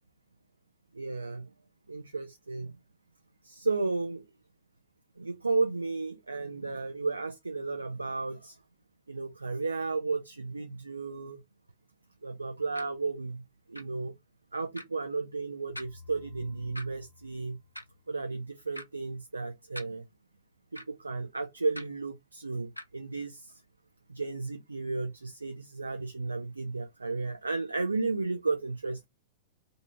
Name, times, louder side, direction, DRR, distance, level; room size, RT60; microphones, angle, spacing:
voice 1, 0.9-1.5 1.9-2.8 3.4-4.3 5.2-8.6 9.1-11.4 12.2-14.2 14.5-17.6 18.1-20.0 20.7-23.6 24.1-29.1, right 3 dB, 80° right, 0.4 m, -33 dB
sound 1, 12.7-12.9 13.7-13.8 14.7-14.9 15.7-15.9 16.7-16.9 17.7-17.9 18.7-18.9 19.7-19.8 20.7-20.9 21.7-21.9 22.8-22.9, left 1 dB, 90° left, 0.4 m, -42 dB
sound 2, 15.7-18.6, left 4 dB, 30° right, 0.8 m, -54 dB
2.6 x 2.5 x 4.2 m
figure-of-eight pair, 100°, 0 cm